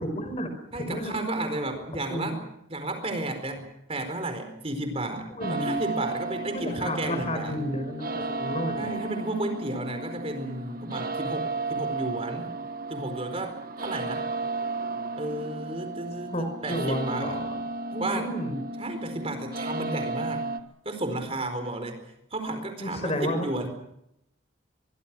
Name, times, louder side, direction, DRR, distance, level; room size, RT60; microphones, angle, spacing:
voice 1, 0.0-1.1 2.1-2.3 5.3-5.7 6.5-8.8 16.3-17.6 18.1-18.6 22.8-23.5, equal, 35° left, 8 dB, 4.9 m, -31 dB
voice 2, 0.7-2.4 2.7-7.6 8.7-12.5 12.9-14.3 15.2-17.4 17.9-18.3 18.8-20.4 20.8-22.0 22.3-23.7, right 2 dB, 30° right, 7 dB, 4.5 m, -33 dB
sound 1, 5.4-20.6, right 3 dB, 45° right, 1.4 m, -34 dB
24.0 x 24.0 x 6.2 m, 0.80 s
head